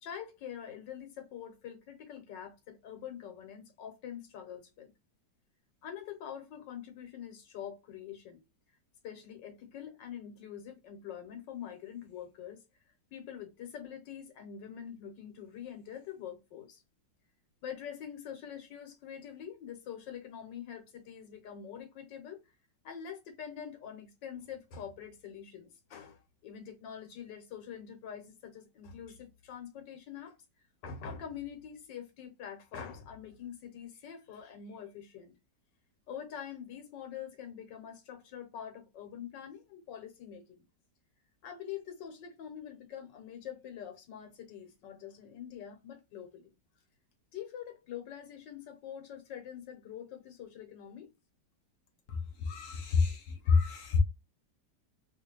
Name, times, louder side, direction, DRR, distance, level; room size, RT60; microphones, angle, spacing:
voice 1, 0.0-4.9 5.8-8.4 9.0-12.6 13.1-16.8 17.6-22.4 22.8-30.4 30.8-35.3 36.1-40.7 41.4-46.5 47.3-51.1, left 8 dB, 90° left, 1.6 m, -45 dB
voice 2, 52.5-54.0, left 5 dB, 65° left, 0.8 m, -28 dB
3.2 x 2.5 x 3.0 m
omnidirectional pair, 1.9 m